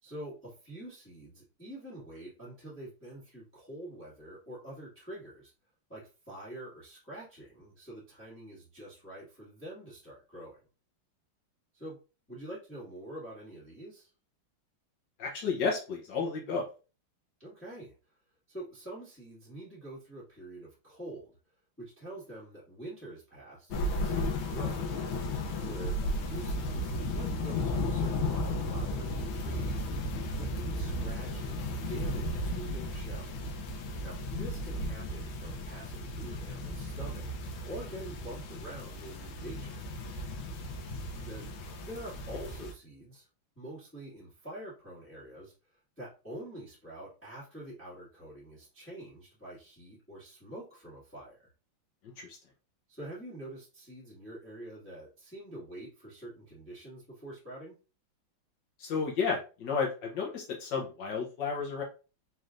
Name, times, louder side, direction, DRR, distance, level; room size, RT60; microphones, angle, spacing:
voice 1, 0.0-5.5 5.9-10.6 11.7-12.0 12.3-14.1 17.4-17.9 18.5-21.4 21.8-24.9 25.6-29.9 30.3-33.3 34.0-37.3 37.6-39.8 41.1-41.5 41.9-43.3 43.5-51.5 52.9-57.7, right 1 dB, 5° left, -7 dB, 1.5 m, -46 dB
voice 2, 15.2-16.6 52.2-52.4 58.8-61.8, left 5 dB, 65° left, 0 dB, 1.4 m, -32 dB
sound 1, 23.7-42.7, left 1 dB, 85° left, 1.5 m, -34 dB
4.2 x 3.2 x 2.4 m, 0.33 s
omnidirectional pair, 2.2 m